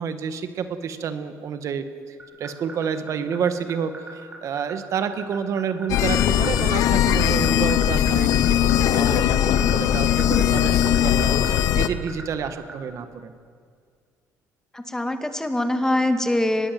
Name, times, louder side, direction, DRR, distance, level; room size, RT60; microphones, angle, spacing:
voice 1, 0.0-13.3, right 7 dB, 60° right, 9 dB, 1.8 m, -29 dB
sound 1, 2.2-12.7, right 3 dB, 25° right, 7.8 m, -38 dB
sound 2, 5.9-11.9, left 10 dB, 75° left, 1.0 m, -20 dB
voice 2, 14.7-16.7, left 1 dB, 10° left, 7 dB, 2.1 m, -23 dB
24.5 x 20.5 x 7.8 m, 2.1 s
cardioid pair, 95°, 6 cm